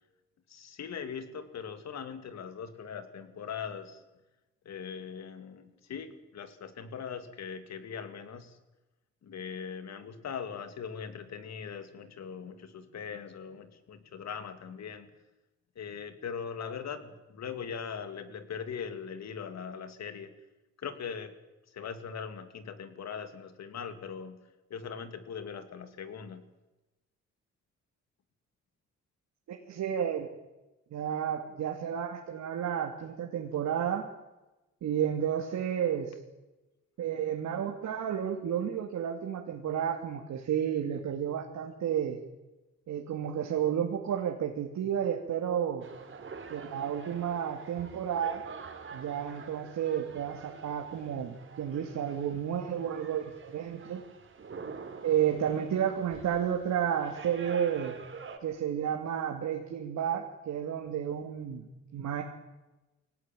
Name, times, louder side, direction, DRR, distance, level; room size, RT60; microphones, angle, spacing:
voice 1, 0.5-4.0 4.6-8.6 9.2-15.1 15.7-20.3 20.8-21.3 21.7-26.5, left 6 dB, 60° left, 10 dB, 2.8 m, -40 dB
voice 2, 29.5-30.3 30.9-34.1 34.8-36.1 37.0-42.2 42.9-45.9 46.5-48.4 48.9-54.0 55.0-58.0 58.4-61.7 61.9-62.2, right 9 dB, 70° right, 2 dB, 2.7 m, -31 dB
sound 1, 45.8-58.4, right 5 dB, 40° right, 3.8 m, -47 dB
23.5 x 18.0 x 9.2 m, 1.0 s
cardioid pair, 90°, 30 cm